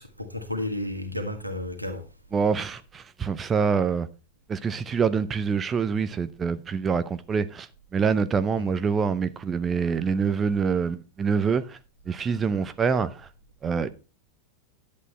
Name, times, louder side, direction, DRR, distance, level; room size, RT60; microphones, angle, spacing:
voice 1, 0.0-2.1 8.6-8.7, left 1 dB, 85° right, 1.9 m, -32 dB
voice 2, 2.3-4.1 4.5-11.8 12.1-13.3 13.6-13.9, right 6 dB, 20° right, 0.6 m, -25 dB
11.0 x 8.4 x 4.3 m
figure-of-eight pair, 90°, 0 cm